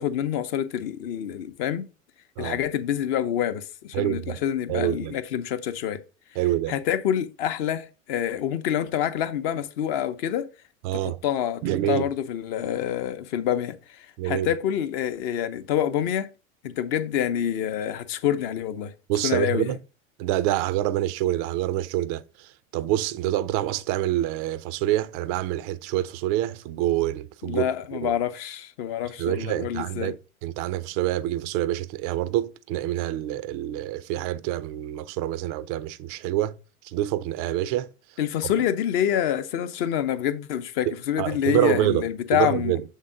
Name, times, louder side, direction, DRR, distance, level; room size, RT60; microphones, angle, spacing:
voice 1, 0.0-1.9 2.4-6.0 6.7-10.5 10.9-16.3 16.6-18.9 19.2-19.8 27.4-30.1 38.2-42.7, left 10 dB, 45° left, 0.7 m, -27 dB
voice 2, 3.9-4.3 4.7-5.1 6.4-6.8 10.8-11.2 11.6-12.0 14.2-14.5 19.1-19.8 20.2-27.6 28.0-28.1 29.2-36.6 36.8-37.9 38.4-38.5 41.2-42.8, right 13 dB, 30° right, 0.4 m, -26 dB
7.3 x 3.7 x 3.7 m
figure-of-eight pair, 85°, 40 cm